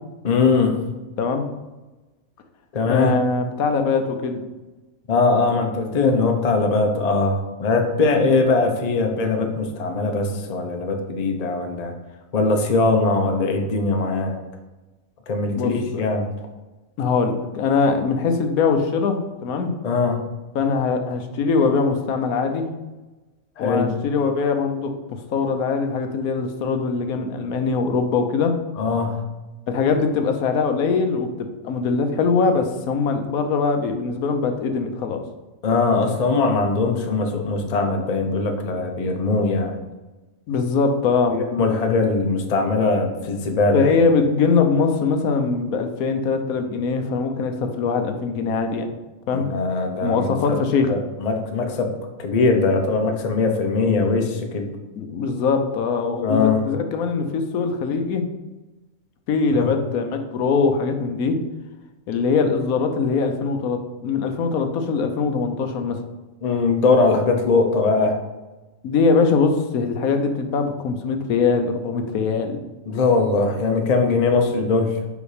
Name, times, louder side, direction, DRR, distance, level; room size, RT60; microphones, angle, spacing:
voice 1, 0.2-0.7 2.7-3.1 5.1-11.9 12.3-14.3 15.3-16.3 19.8-20.2 23.6-23.9 28.8-29.2 35.6-39.7 41.3-43.9 49.3-50.6 50.9-51.9 52.2-54.7 56.2-56.6 59.5-59.7 66.4-68.2 72.9-74.9, left 3 dB, 35° left, 3 dB, 0.7 m, -21 dB
voice 2, 2.8-4.4 15.5-16.0 17.0-19.7 20.5-22.7 23.6-28.5 29.7-35.2 40.5-41.4 43.7-48.9 49.3-49.5 50.0-50.9 55.0-58.2 59.3-61.4 62.1-66.0 68.8-72.6, left 4 dB, 80° left, 6 dB, 1.2 m, -22 dB
5.1 x 5.0 x 4.9 m, 1.1 s
omnidirectional pair, 1.5 m